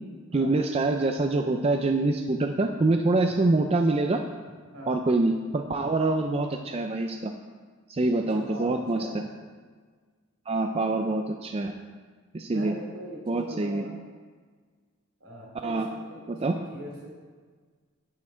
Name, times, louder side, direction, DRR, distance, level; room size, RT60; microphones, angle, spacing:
voice 1, 0.3-4.2 4.9-7.3 7.9-9.1 10.5-11.7 12.3-12.7 13.3-13.8 15.6-15.9 16.3-16.5, right 2 dB, 30° right, 4 dB, 0.4 m, -25 dB
voice 2, 8.2-9.2 12.5-14.0 15.2-17.1, equal, 70° right, -2 dB, 3.3 m, -41 dB
9.6 x 8.7 x 4.4 m, 1.5 s
head